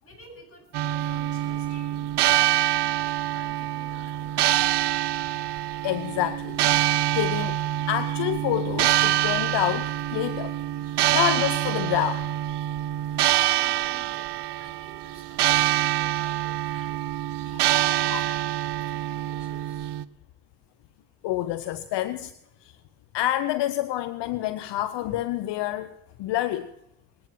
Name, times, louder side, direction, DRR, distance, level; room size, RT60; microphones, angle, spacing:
voice 1, 0.0-4.9 10.9-11.1 13.0-19.9, left 1 dB, 30° left, 1 dB, 7.8 m, -50 dB
sound 1, 0.7-20.0, right 13 dB, 65° right, 0.7 m, -25 dB
voice 2, 5.8-7.6 7.9-10.6 10.9-12.3 18.1-18.2 21.2-22.3 22.6-22.7 23.1-25.9 26.2-26.7, left 13 dB, 70° left, 13 dB, 0.7 m, -28 dB
20.0 x 9.3 x 5.9 m, 0.83 s
hypercardioid pair, 45°, 44 cm